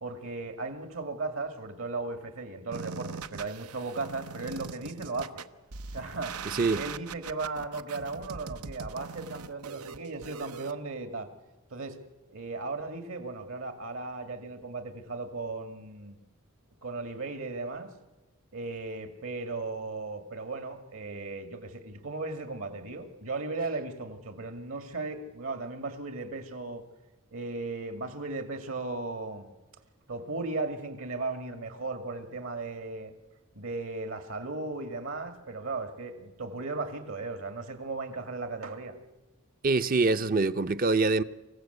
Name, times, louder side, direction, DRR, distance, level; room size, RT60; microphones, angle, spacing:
voice 1, 0.0-5.3 5.9-6.5 6.7-11.3 11.7-12.0 12.3-16.2 16.8-17.9 18.5-26.8 27.3-29.5 30.1-33.1 33.6-39.0, right 3 dB, 70° right, 2.2 m, -36 dB
sound 1, 2.7-10.7, right 5 dB, 90° right, 0.9 m, -41 dB
voice 2, 6.4-6.8 39.6-41.2, right 3 dB, 40° right, 0.6 m, -25 dB
25.5 x 15.5 x 8.1 m
head